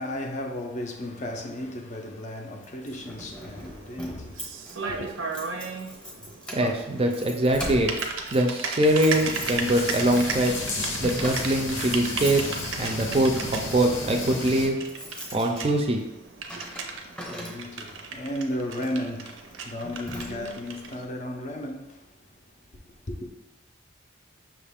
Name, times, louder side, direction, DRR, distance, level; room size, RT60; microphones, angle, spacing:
voice 1, 0.0-5.1 16.5-23.3, left 1 dB, 40° left, 0.5 m, -35 dB
Keys jangling, 2.6-18.0 18.7-19.0 19.5-19.6 19.8-20.7, equal, 5° left, 0.8 m, -41 dB
Typing, 3.0-21.0, right 4 dB, 80° right, 0.5 m, -36 dB
voice 2, 6.5-7.9 8.3-10.6 11.0-12.5 12.8-14.8 15.3-16.0, right 1 dB, 30° right, 0.4 m, -23 dB
sound 1, 8.8-14.7, left 2 dB, 75° left, 0.8 m, -33 dB
5.9 x 2.4 x 3.5 m
head